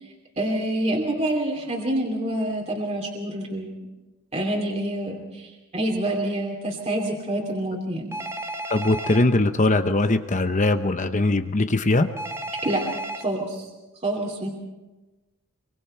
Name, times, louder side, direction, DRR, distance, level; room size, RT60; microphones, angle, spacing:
voice 1, 0.4-3.8 4.3-8.1 12.6-12.8 13.2-13.7 14.0-14.5, right 1 dB, 30° right, 0 dB, 2.8 m, -27 dB
Telephone, 8.1-9.2 12.2-13.2, right 1 dB, 10° right, 1.2 m, -32 dB
voice 2, 8.7-12.1, left 2 dB, 35° left, 8 dB, 0.9 m, -21 dB
24.0 x 24.0 x 4.5 m, 1.1 s
head